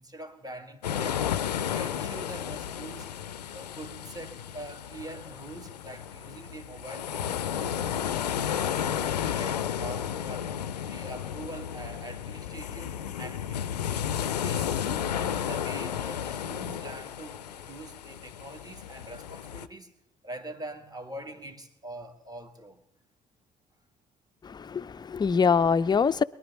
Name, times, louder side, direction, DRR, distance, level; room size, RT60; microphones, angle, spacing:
voice 1, 0.0-1.3 1.7-3.1 3.5-8.2 8.5-10.5 10.9-13.9 14.4-14.7 15.1-19.9 20.2-22.8, right 1 dB, 20° right, 2.0 m, -44 dB
sound 1, 0.8-19.7, left 9 dB, 85° left, 0.5 m, -33 dB
voice 2, 24.4-26.2, left 5 dB, 20° left, 0.5 m, -24 dB
22.5 x 11.5 x 4.2 m
figure-of-eight pair, 45°, 20 cm